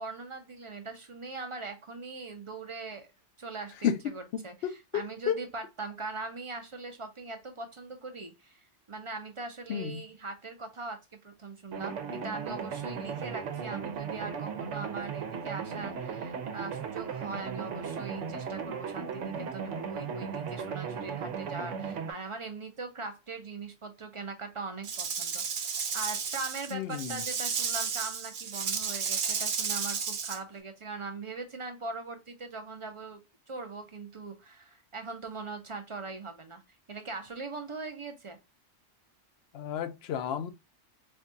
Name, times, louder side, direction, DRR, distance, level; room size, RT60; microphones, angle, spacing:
voice 1, 0.0-3.1 3.4-11.0 11.2-33.2 33.5-36.6 36.9-38.4, right 3 dB, 35° right, 0.5 m, -41 dB
voice 2, 4.6-5.4 9.7-10.0 26.7-27.2 39.5-40.5, left 8 dB, 65° left, 0.8 m, -31 dB
sound 1, 11.7-22.1, right 6 dB, 85° right, 1.0 m, -36 dB
Rattle / Rattle (instrument), 24.8-30.4, right 6 dB, 60° right, 0.9 m, -32 dB
4.4 x 2.3 x 2.5 m
omnidirectional pair, 1.2 m